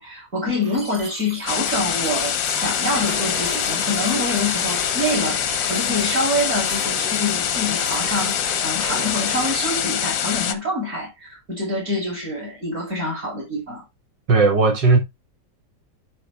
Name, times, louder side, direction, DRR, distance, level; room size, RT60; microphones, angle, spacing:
voice 1, 0.0-13.8, left 1 dB, 40° right, 6.2 m, -26 dB
sound 1, 0.6-8.4, right 1 dB, 20° right, 3.0 m, -38 dB
sound 2, 1.5-10.5, left 9 dB, 60° left, 1.0 m, -24 dB
sound 3, 2.4-9.6, right 1 dB, 60° right, 4.0 m, -35 dB
voice 2, 14.3-15.0, right 3 dB, 80° right, 2.7 m, -16 dB
11.0 x 4.6 x 3.4 m
omnidirectional pair, 1.9 m